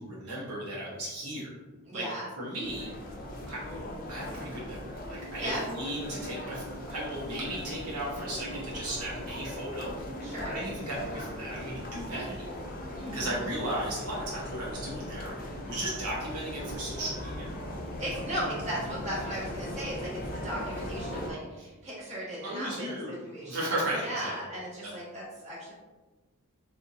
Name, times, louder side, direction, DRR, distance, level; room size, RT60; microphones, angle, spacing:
voice 1, 0.0-1.5 1.9-2.1 2.4-2.9 3.5-3.6 4.1-9.9 10.4-12.7 13.1-17.5 18.3-18.4 22.4-23.1 23.5-24.3 24.8-24.9, right 1 dB, 75° right, -6 dB, 1.0 m, -36 dB
voice 2, 1.9-2.3 5.4-5.6 10.2-10.5 13.0-13.3 18.0-23.0 23.2-23.7 24.0-25.7, equal, 30° right, -8 dB, 1.4 m, -37 dB
sound 1, 2.6-21.3, left 1 dB, 40° left, 0.5 m, -39 dB
4.3 x 2.5 x 2.7 m, 1.2 s
head